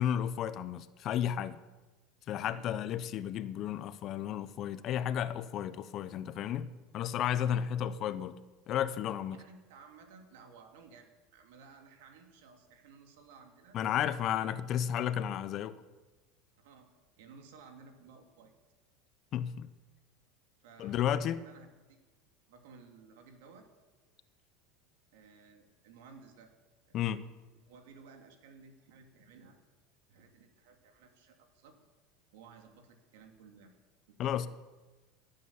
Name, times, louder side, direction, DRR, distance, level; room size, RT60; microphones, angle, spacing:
voice 1, 0.0-1.6 2.3-6.7 6.9-8.4 8.7-9.4 13.7-15.8 19.3-19.7 20.8-21.4 26.9-27.2 34.2-34.5, left 10 dB, 45° left, 14 dB, 0.8 m, -33 dB
voice 2, 2.4-2.8 7.4-7.6 9.3-14.4 16.6-16.9 17.2-18.5 20.6-22.0 22.5-23.7 25.1-26.5 26.9-27.1 27.6-29.6 30.1-31.8 32.3-33.7 34.1-34.5, right 5 dB, 80° right, 4 dB, 2.7 m, -56 dB
17.5 x 9.2 x 7.1 m, 1.2 s
supercardioid pair, 125°, 0 cm